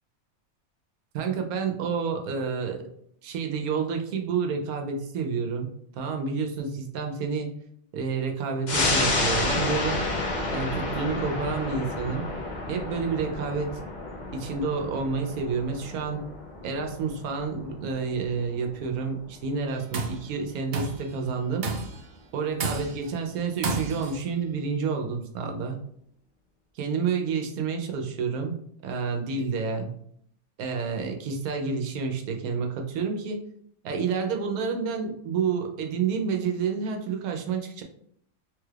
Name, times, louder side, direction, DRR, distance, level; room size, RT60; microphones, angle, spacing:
voice 1, 1.1-2.9 3.2-7.6 7.9-10.1 10.5-12.3 12.7-13.8 14.3-16.3 16.6-21.7 22.3-25.8 26.7-29.9 30.6-33.4 33.8-37.8, right 5 dB, 85° right, 3 dB, 1.1 m, -29 dB
sound 1, 8.7-19.6 20.0-20.1, left 2 dB, 45° left, 0.6 m, -30 dB
Tools, 19.7-20.2 20.7-21.1 21.6-22.1 22.6-23.1 23.6-24.2, right 4 dB, 65° right, 0.6 m, -31 dB
3.4 x 2.3 x 3.2 m, 0.68 s
omnidirectional pair, 1.5 m